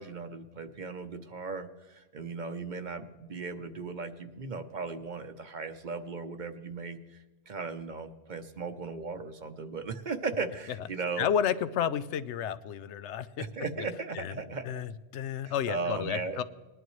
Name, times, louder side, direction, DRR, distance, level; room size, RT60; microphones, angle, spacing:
voice 1, 0.0-11.3 13.4-14.8 15.4-16.4, right 4 dB, 50° right, 9 dB, 0.8 m, -37 dB
voice 2, 11.2-13.4 13.8-13.9 14.1-14.3 14.6-16.4, left 8 dB, 85° left, 14 dB, 0.9 m, -31 dB
20.0 x 11.0 x 3.1 m, 1.2 s
omnidirectional pair, 1.1 m